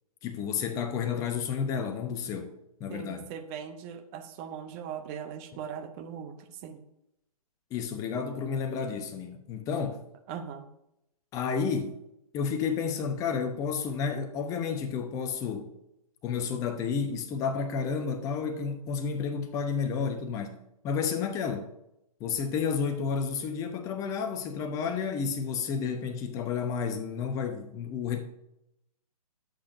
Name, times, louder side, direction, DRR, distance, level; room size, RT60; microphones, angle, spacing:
voice 1, 0.2-2.5 2.8-3.3 7.7-10.0 11.3-11.9 12.3-15.7 16.2-20.6 20.8-21.7 22.2-28.2, left 6 dB, 15° left, 0.9 m, -31 dB
voice 2, 2.9-6.8 10.3-10.7, right 8 dB, 20° right, 0.7 m, -40 dB
13.5 x 8.0 x 2.7 m
figure-of-eight pair, 125°, 19 cm